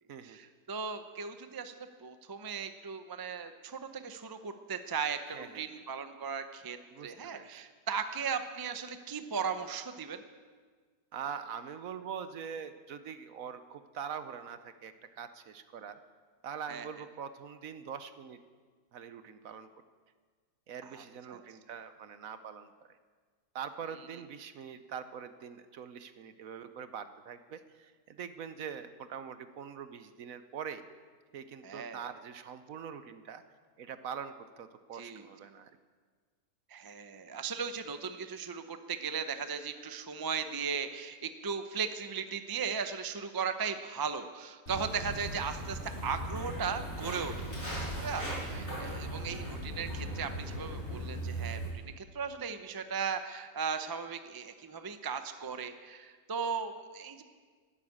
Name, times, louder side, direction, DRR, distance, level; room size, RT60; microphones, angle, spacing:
voice 1, 0.2-6.8 7.0-10.2 16.7-16.9 20.9-21.4 31.6-32.0 34.9-35.3 36.7-57.2, right 6 dB, 30° right, 8 dB, 0.4 m, -37 dB
voice 2, 5.3-5.8 6.9-7.6 11.1-16.0 16.4-18.4 18.9-19.7 20.7-23.0 23.5-30.8 31.3-33.4 33.8-35.7 48.2-49.0, right 7 dB, 65° right, 11 dB, 1.1 m, -43 dB
Walk footsteps, 44.7-51.7, right 1 dB, 40° left, 5.5 m, -38 dB
12.5 x 11.5 x 8.6 m, 1.5 s
omnidirectional pair, 1.7 m